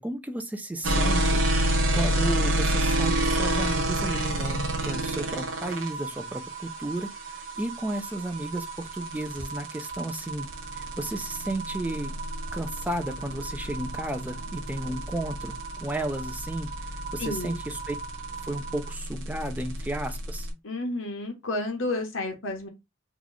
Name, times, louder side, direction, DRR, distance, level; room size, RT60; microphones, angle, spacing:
voice 1, 0.0-1.5 1.7-12.1 12.5-18.0 18.4-20.5, right 1 dB, 10° right, 0.3 m, -33 dB
sound 1, 0.8-20.5, right 1 dB, 85° right, 0.8 m, -29 dB
sound 2, 2.8-18.9, right 5 dB, 30° right, 1.2 m, -40 dB
voice 2, 17.2-17.6 20.6-22.7, left 2 dB, 85° left, 1.1 m, -31 dB
3.0 x 2.3 x 3.9 m
head